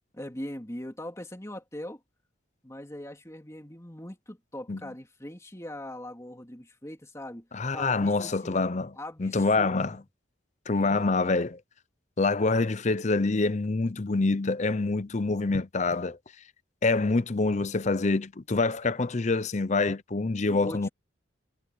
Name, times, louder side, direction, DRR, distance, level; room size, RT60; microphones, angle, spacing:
voice 1, 0.1-2.0 2.6-7.5 7.7-10.0 20.4-20.9, left 1 dB, 15° left, 3.0 m, -41 dB
voice 2, 7.5-8.9 9.2-10.0 10.7-11.6 12.2-16.2 16.8-20.9, left 3 dB, 35° left, 0.6 m, -26 dB
head